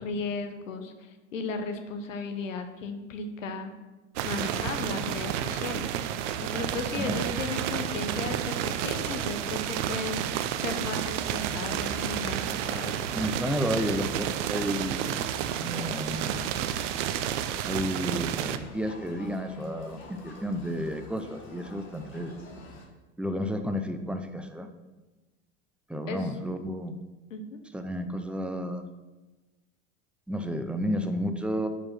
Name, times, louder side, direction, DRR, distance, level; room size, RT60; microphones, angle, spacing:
voice 1, 0.0-3.7 4.2-6.0 6.4-13.0 26.1-26.3 27.3-27.6, left 3 dB, 85° left, 7 dB, 0.9 m, -35 dB
sound 1, 4.2-18.6, right 10 dB, 70° right, 0.6 m, -31 dB
Crowd, 10.9-22.8, left 2 dB, 55° left, 1.5 m, -47 dB
voice 2, 13.1-15.3 15.6-16.6 17.7-22.4 23.2-24.7 25.9-26.9 27.7-28.8 30.3-31.7, equal, 5° right, 6 dB, 0.6 m, -31 dB
sound 2, 15.8-21.0, left 1 dB, 20° left, 1.9 m, -53 dB
5.1 x 4.8 x 5.9 m, 1.2 s
hypercardioid pair, 85°, 37 cm